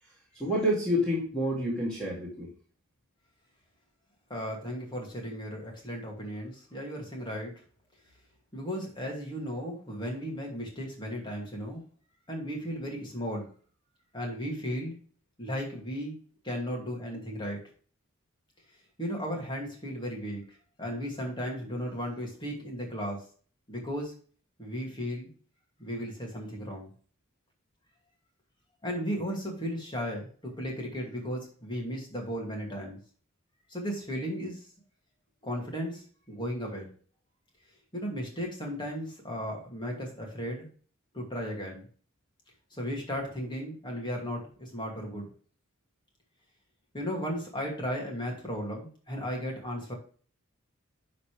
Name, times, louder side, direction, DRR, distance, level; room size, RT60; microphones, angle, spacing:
voice 1, 0.4-2.5, equal, 5° left, -6 dB, 2.5 m, -28 dB
voice 2, 4.3-7.5 8.5-11.8 12.3-13.5 14.1-15.0 15.4-16.1 16.4-17.6 19.0-20.4 20.8-23.3 23.7-24.1 24.6-25.3 25.8-26.9 28.8-30.3 30.6-33.0 33.7-34.7 35.4-36.9 37.9-40.7 41.1-41.9 42.7-45.3 46.9-49.9, equal, 25° left, 0 dB, 2.5 m, -35 dB
11.0 x 4.2 x 3.3 m, 0.42 s
head